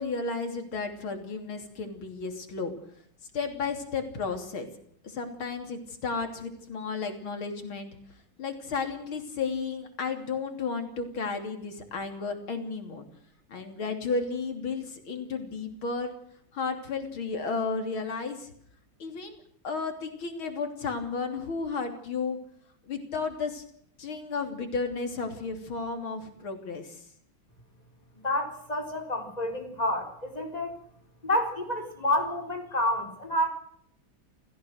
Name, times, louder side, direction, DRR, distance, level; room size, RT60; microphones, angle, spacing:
voice 1, 0.0-2.7 3.3-4.7 5.0-7.9 8.4-13.0 13.5-16.1 16.5-18.5 19.0-22.4 22.9-23.6 24.0-27.1, left 4 dB, 90° left, 6 dB, 3.8 m, -33 dB
voice 2, 28.2-30.8 31.2-33.5, left 1 dB, 20° left, 3 dB, 4.5 m, -29 dB
29.0 x 15.5 x 6.5 m, 0.66 s
omnidirectional pair, 2.2 m